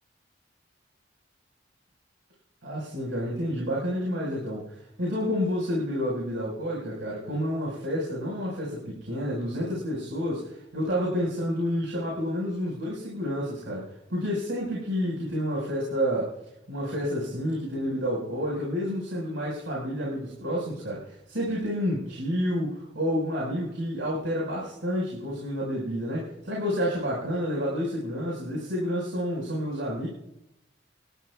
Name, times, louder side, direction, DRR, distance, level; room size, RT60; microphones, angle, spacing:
voice 1, 2.6-16.4 16.7-30.1, equal, 85° right, -5 dB, 5.2 m, -29 dB
27.5 x 13.5 x 2.4 m, 0.83 s
head